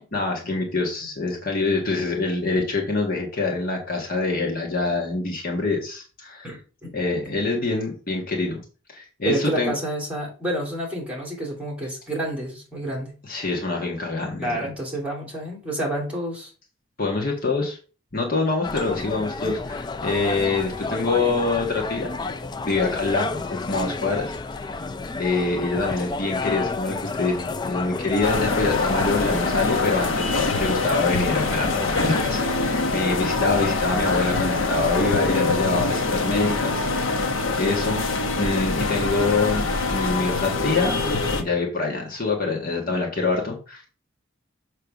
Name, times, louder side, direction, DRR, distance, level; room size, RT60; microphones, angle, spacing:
voice 1, 0.1-6.4 6.9-8.6 8.9-9.7 13.2-14.5 17.0-17.8 18.1-22.2 22.6-24.8 25.2-38.0 38.4-39.7 39.9-41.0 41.4-43.9, left 3 dB, 45° left, 0 dB, 1.5 m, -25 dB
voice 2, 6.4-6.9 7.2-7.4 9.2-13.1 14.4-16.5 17.4-17.5, right 1 dB, 5° right, -2 dB, 2.7 m, -29 dB
sound 1, 18.6-32.3, left 3 dB, 20° left, 0.3 m, -31 dB
sound 2, 28.2-41.4, left 3 dB, 80° left, 1.1 m, -24 dB
6.8 x 3.3 x 6.1 m, 0.37 s
head